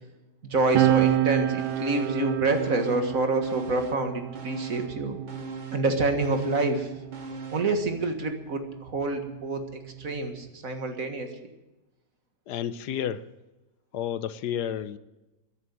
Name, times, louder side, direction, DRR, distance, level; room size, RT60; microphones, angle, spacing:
voice 1, 0.4-5.2 5.7-6.9 7.5-9.6 10.0-11.3, right 2 dB, 50° right, 5 dB, 2.1 m, -27 dB
sound 1, 0.7-1.3 1.6-3.1 3.4-7.8 8.1-8.2, right 2 dB, 30° right, 1.0 m, -41 dB
sound 2, 0.8-7.7 8.6-10.5, right 13 dB, 75° right, 1.3 m, -30 dB
voice 2, 12.5-13.3 13.9-15.0, left 9 dB, 75° left, 14 dB, 1.3 m, -31 dB
14.0 x 11.0 x 9.3 m, 1.0 s
omnidirectional pair, 1.8 m